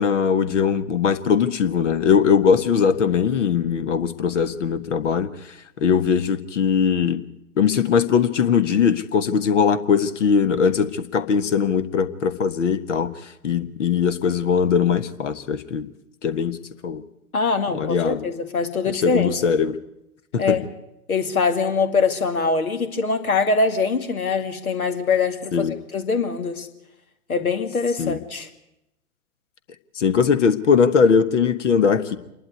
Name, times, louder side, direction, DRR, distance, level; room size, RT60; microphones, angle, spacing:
voice 1, 0.0-5.3 5.8-7.2 7.6-13.1 13.4-15.9 16.2-16.6 16.8-17.0 17.7-18.3 18.9-19.8 20.3-20.6 25.5-25.7 28.0-28.2 30.0-32.2, left 6 dB, 55° left, 13 dB, 1.4 m, -20 dB
voice 2, 17.3-19.4 20.4-20.6 21.1-26.7 27.3-28.5, left 4 dB, 70° left, 8 dB, 2.4 m, -23 dB
27.0 x 11.5 x 9.5 m, 0.89 s
figure-of-eight pair, 110°, 44 cm